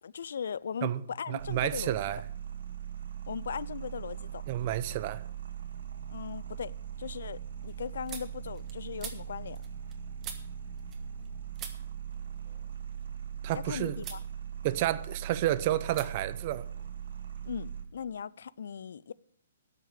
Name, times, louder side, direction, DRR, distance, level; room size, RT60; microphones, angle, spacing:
voice 1, 0.0-2.0 3.3-4.4 6.1-6.7 7.0-9.6 13.5-14.2 17.4-19.1, left 7 dB, 70° left, 0.4 m, -38 dB
voice 2, 0.8-2.2 4.5-5.2 13.4-13.9 14.6-16.7, right 13 dB, 40° right, 0.6 m, -30 dB
sound 1, 1.4-17.8, right 9 dB, 75° right, 1.8 m, -40 dB
sound 2, 5.3-5.9 6.2-11.3 11.5-13.6 14.0-14.3 14.6-15.4 15.9-16.1 16.3-17.4, right 7 dB, 20° right, 1.4 m, -48 dB
12.5 x 5.9 x 7.4 m
hypercardioid pair, 145°, 0 cm